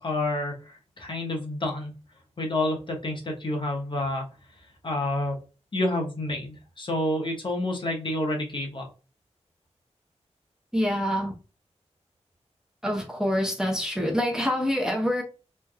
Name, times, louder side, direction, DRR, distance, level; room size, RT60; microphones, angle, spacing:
voice 1, 0.0-2.0 2.4-4.3 4.8-5.4 5.7-8.9, left 1 dB, 45° left, 0.9 m, -29 dB
voice 2, 10.7-11.3 12.8-15.2, equal, 5° right, 0.7 m, -26 dB
3.2 x 2.5 x 2.2 m
wide cardioid pair, 105°, 12 cm